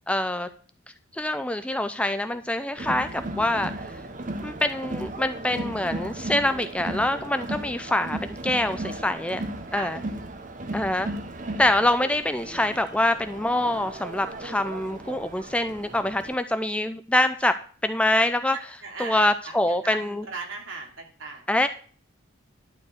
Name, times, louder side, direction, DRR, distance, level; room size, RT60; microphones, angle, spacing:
voice 1, 0.1-0.5 1.1-3.8 4.4-9.4 9.7-10.0 10.7-11.1 11.6-18.6 19.0-20.3 21.5-21.7, left 1 dB, 5° left, 9 dB, 0.5 m, -25 dB
Crowd, 2.8-16.3, right 1 dB, 40° right, 1.0 m, -36 dB
voice 2, 18.8-21.4, right 3 dB, 70° right, 0 dB, 3.3 m, -38 dB
11.5 x 4.6 x 7.9 m, 0.42 s
head